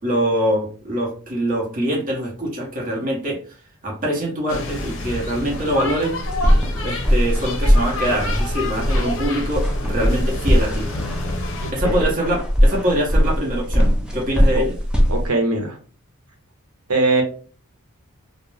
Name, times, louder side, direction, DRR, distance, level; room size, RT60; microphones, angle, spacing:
voice 1, 0.0-3.4 3.8-6.2 6.8-10.9 11.7-14.7, equal, 35° right, -2 dB, 0.8 m, -24 dB
sound 1, 4.5-11.7, left 2 dB, 60° left, 0.5 m, -29 dB
sound 2, 6.2-15.3, equal, 5° right, 0.4 m, -20 dB
voice 2, 15.1-15.8 16.9-17.2, right 2 dB, 75° right, 2 dB, 0.9 m, -20 dB
2.4 x 2.1 x 3.2 m, 0.39 s
head